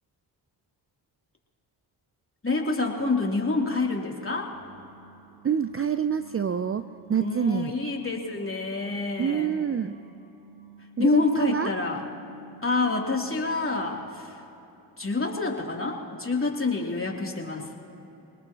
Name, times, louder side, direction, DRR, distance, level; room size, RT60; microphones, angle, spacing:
voice 1, 2.4-4.5 7.2-9.5 11.0-12.0 12.6-14.3 15.0-17.7, left 3 dB, 25° left, -1 dB, 3.1 m, -27 dB
sound 1, 4.5-14.2, right 5 dB, 65° right, 2.8 m, -51 dB
voice 2, 5.4-7.8 9.2-10.0 11.0-11.7, right 8 dB, 30° right, 11 dB, 0.5 m, -27 dB
25.0 x 19.5 x 3.0 m, 3.0 s
supercardioid pair, 40°, 47 cm